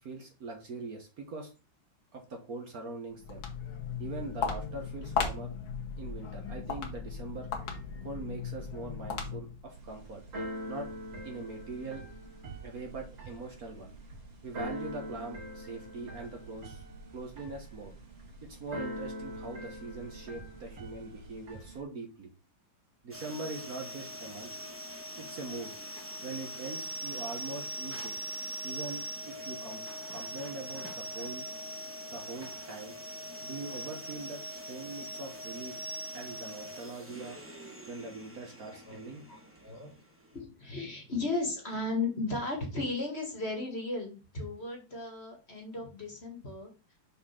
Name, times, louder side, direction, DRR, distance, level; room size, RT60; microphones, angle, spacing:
voice 1, 0.0-1.5 2.1-3.4 4.0-5.5 6.0-7.5 8.0-10.2 10.7-10.9 11.2-12.0 12.6-13.9 14.4-16.8 17.1-17.9 18.4-22.3 23.0-24.5 25.2-25.7 26.2-28.1 28.6-29.8 30.1-31.5 32.1-33.0 33.4-35.8 36.1-37.4 37.9-39.2, right 3 dB, 50° right, 3 dB, 1.5 m, -42 dB
Walk footsteps, 3.1-9.7, left 6 dB, 75° left, 2.1 m, -36 dB
Keyboard (musical), 9.7-21.8, equal, 70° right, 3.0 m, -43 dB
sound 1, 23.1-40.4, equal, 10° right, 0.7 m, -42 dB
voice 2, 38.7-39.0 39.3-39.9 40.3-46.7, left 2 dB, 35° left, 1 dB, 1.8 m, -35 dB
6.1 x 4.2 x 5.8 m, 0.32 s
omnidirectional pair, 2.2 m